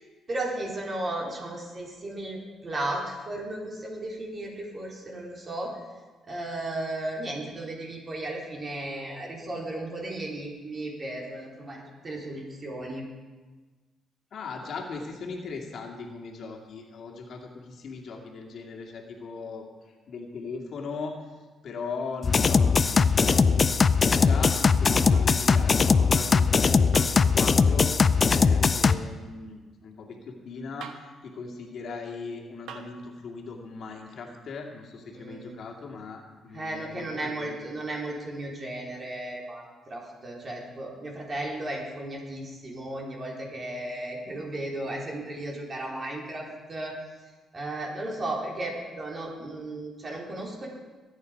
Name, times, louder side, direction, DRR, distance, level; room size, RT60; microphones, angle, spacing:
voice 1, 0.3-2.4 2.6-5.7 6.3-13.1 35.1-35.6 36.5-46.9 47.5-50.7, right 1 dB, 35° right, -1 dB, 4.1 m, -35 dB
voice 2, 14.3-19.7 20.1-21.1 21.6-37.6, left 4 dB, 60° left, 2 dB, 2.3 m, -39 dB
sound 1, 22.2-28.9, left 5 dB, 35° left, 0.6 m, -20 dB
sound 2, 23.3-23.6 25.1-25.4 26.9-27.3 28.8-29.0 30.8-31.2 32.7-33.0 34.7-34.8, right 6 dB, 80° right, 1.2 m, -43 dB
20.0 x 9.6 x 5.3 m, 1.3 s
cardioid pair, 90°, 0 cm